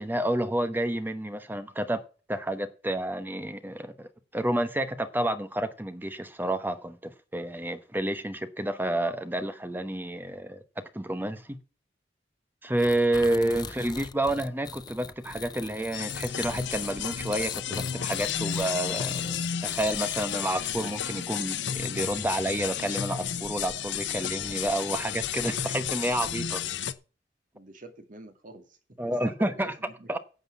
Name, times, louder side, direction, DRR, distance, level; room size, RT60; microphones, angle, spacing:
voice 1, 0.0-2.0 2.3-10.6 10.9-11.6 12.6-26.6 29.0-29.7 30.1-30.2, right 1 dB, 10° right, 1.0 m, -30 dB
sound 1, 12.8-21.3, left 5 dB, 25° left, 0.5 m, -42 dB
sound 2, 15.9-26.9, left 9 dB, 75° left, 0.8 m, -32 dB
voice 2, 27.5-30.2, right 2 dB, 45° right, 2.2 m, -47 dB
9.3 x 7.9 x 7.1 m
head